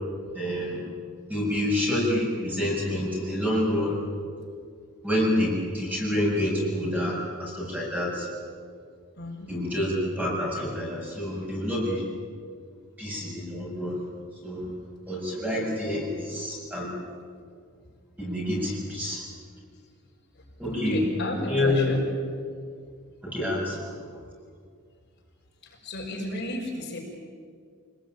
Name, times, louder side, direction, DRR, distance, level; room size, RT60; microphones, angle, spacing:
voice 1, 0.3-0.8 1.3-4.0 5.0-8.3 9.5-12.0 13.0-14.0 14.4-14.7 15.1-16.9 18.2-19.2 20.6-21.0 21.5-22.0 23.2-23.9, left 1 dB, 10° right, -3 dB, 7.3 m, -27 dB
voice 2, 9.2-9.5 18.5-18.7 20.3-22.1 25.6-27.0, left 1 dB, 55° left, -1 dB, 5.6 m, -33 dB
27.5 x 20.0 x 9.2 m, 2.1 s
head